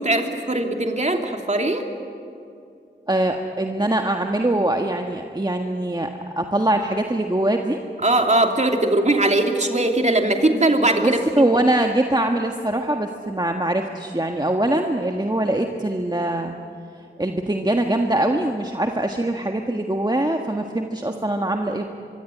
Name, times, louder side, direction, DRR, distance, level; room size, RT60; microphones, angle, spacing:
voice 1, 0.0-1.8 8.0-11.2, right 2 dB, 40° right, 3 dB, 2.9 m, -20 dB
voice 2, 3.1-6.1 6.4-7.8 11.0-16.5 17.2-21.9, right 1 dB, 20° right, 3 dB, 1.5 m, -22 dB
25.0 x 23.0 x 9.9 m, 2.5 s
wide cardioid pair, 65°, 19 cm